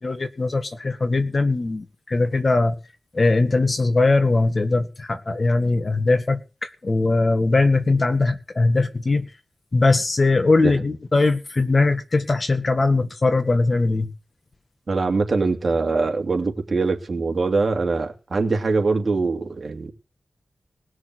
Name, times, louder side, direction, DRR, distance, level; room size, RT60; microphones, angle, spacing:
voice 1, 0.0-2.8 3.1-9.2 9.7-14.1, left 3 dB, 45° left, 1.8 m, -20 dB
voice 2, 14.9-19.9, right 3 dB, 55° right, 2.8 m, -23 dB
19.0 x 6.5 x 8.0 m
wide cardioid pair, 75°, 0 cm